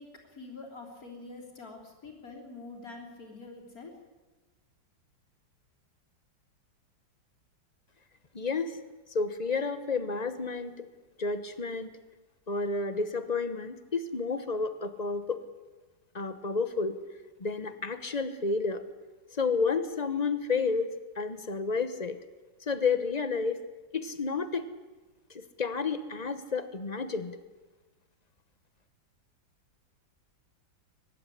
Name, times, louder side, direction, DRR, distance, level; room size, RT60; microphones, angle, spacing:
voice 1, 0.0-3.9, left 3 dB, 45° left, 1 dB, 3.7 m, -46 dB
voice 2, 8.3-8.8 9.1-10.9 11.2-11.9 12.5-15.4 16.1-17.0 17.4-18.8 19.3-22.2 22.7-23.6 23.9-24.6 25.3-27.4, left 4 dB, 30° left, 11 dB, 0.8 m, -31 dB
23.5 x 12.0 x 9.9 m, 1.2 s
omnidirectional pair, 2.1 m